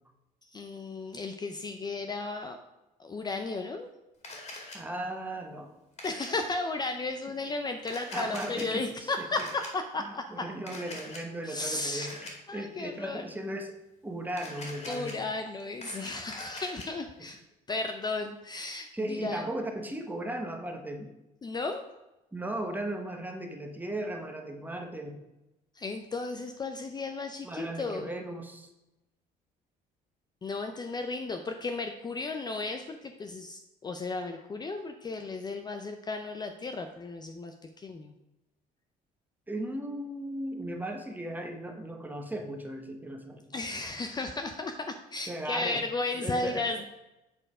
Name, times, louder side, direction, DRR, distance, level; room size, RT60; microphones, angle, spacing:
voice 1, 0.5-2.6 3.0-3.9 6.0-10.5 11.4-12.1 12.5-13.2 14.9-17.4 17.7-19.5 21.4-21.8 25.7-28.1 30.4-38.2 43.5-46.8, left 3 dB, 25° left, 6 dB, 0.5 m, -34 dB
Camera, 4.2-4.8 6.0-6.3 7.8-8.6 9.4-9.7 10.7-11.2 12.0-12.3 14.3-15.1 15.6-16.9, left 2 dB, 40° left, 2.1 m, -43 dB
voice 2, 4.7-5.8 8.1-9.5 10.3-13.7 14.0-15.2 18.9-21.1 22.3-25.2 27.4-28.7 39.5-43.5 45.3-45.8 46.1-46.8, right 1 dB, 10° right, 4 dB, 1.0 m, -37 dB
7.6 x 4.5 x 4.9 m, 0.96 s
cardioid pair, 110°, 17 cm